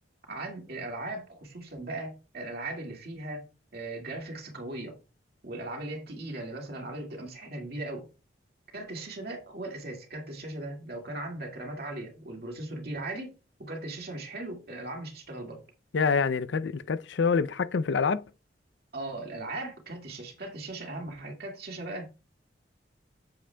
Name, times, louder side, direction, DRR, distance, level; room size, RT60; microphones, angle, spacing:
voice 1, 0.3-3.4 3.7-5.0 5.4-8.1 8.7-13.3 13.6-15.6 18.9-22.1, right 2 dB, 55° right, 2.1 m, -38 dB
voice 2, 15.9-18.2, left 5 dB, 80° left, 0.5 m, -26 dB
8.4 x 7.7 x 2.3 m
head